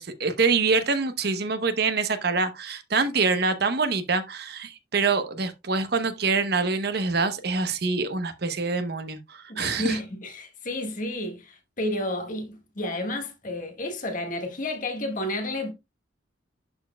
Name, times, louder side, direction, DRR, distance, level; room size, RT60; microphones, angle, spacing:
voice 1, 0.0-10.0, right 4 dB, 55° right, 0.9 m, -25 dB
voice 2, 9.5-15.7, left 1 dB, 45° left, 1.5 m, -31 dB
11.5 x 4.4 x 2.2 m
head